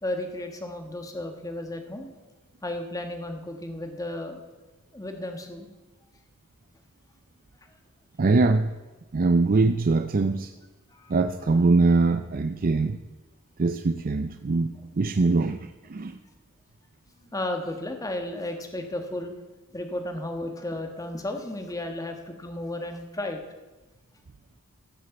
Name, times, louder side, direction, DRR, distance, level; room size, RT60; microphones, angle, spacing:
voice 1, 0.0-2.1 2.6-4.4 4.9-5.7 10.9-11.1 16.1-16.2 17.3-19.3 19.7-23.4, left 1 dB, 15° left, 5 dB, 1.3 m, -33 dB
voice 2, 8.2-8.7 9.1-10.5 11.1-13.0 13.6-16.2, right 3 dB, 40° right, 8 dB, 0.4 m, -22 dB
15.5 x 6.5 x 7.0 m, 1.2 s
head